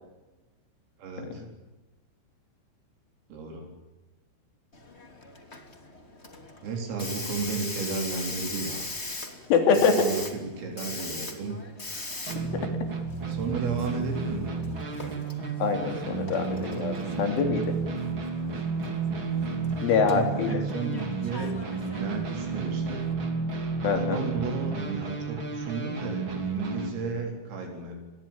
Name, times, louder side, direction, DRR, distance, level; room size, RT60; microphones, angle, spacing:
voice 1, 1.0-1.4 3.3-3.7 6.6-8.9 9.9-11.6 13.3-14.9 20.0-23.1 23.9-28.0, right 4 dB, 80° right, 2 dB, 6.6 m, -33 dB
Hiss, 4.7-23.1, left 2 dB, 20° left, 2.1 m, -41 dB
voice 2, 9.5-10.1 12.5-12.6 15.6-17.8 19.8-20.6 23.8-24.2, left 5 dB, 70° left, 6 dB, 5.3 m, -24 dB
sound 1, 12.3-26.9, right 4 dB, 30° right, 3.0 m, -32 dB
27.0 x 21.5 x 8.9 m, 1.1 s
omnidirectional pair, 5.9 m